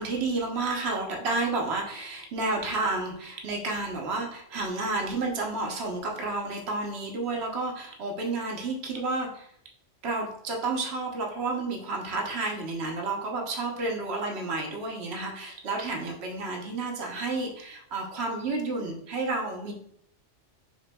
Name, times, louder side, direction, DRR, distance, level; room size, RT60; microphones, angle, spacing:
voice 1, 0.0-9.5 10.0-19.7, right 3 dB, 65° right, 1 dB, 1.1 m, -31 dB
6.0 x 3.2 x 2.2 m, 0.70 s
omnidirectional pair, 1.2 m